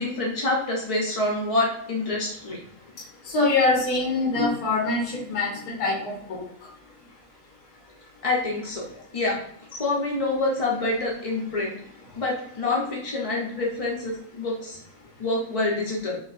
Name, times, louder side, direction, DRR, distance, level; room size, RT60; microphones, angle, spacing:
voice 1, 0.0-2.6 8.2-8.8 9.1-9.4 9.7-11.8 12.1-14.8 15.2-16.2, left 2 dB, 50° left, -3 dB, 0.4 m, -26 dB
voice 2, 3.2-6.4, left 3 dB, 75° left, -3 dB, 1.5 m, -24 dB
6.3 x 2.7 x 2.4 m, 0.69 s
omnidirectional pair, 1.7 m